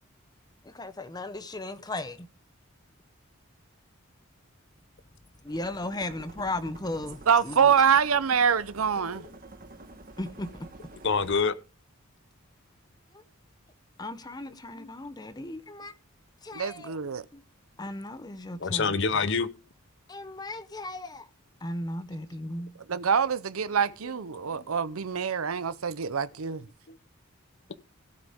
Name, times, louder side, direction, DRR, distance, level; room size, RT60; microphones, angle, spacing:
voice 1, 0.6-2.3 5.4-7.7 10.2-10.5 14.0-15.9 16.4-16.9 17.3-17.4 17.8-18.9 20.1-21.3 21.6-22.7, left 2 dB, 20° left, 0.8 m, -36 dB
sound 1, 5.5-11.4, right 2 dB, 40° right, 1.5 m, -48 dB
voice 2, 7.3-9.2 16.5-17.2 22.9-26.7, right 7 dB, 85° right, 0.7 m, -25 dB
voice 3, 11.0-11.5 14.8-14.9 18.6-19.5 24.5-24.7 26.9-27.0, left 5 dB, 60° left, 0.8 m, -26 dB
16.5 x 8.3 x 3.6 m
head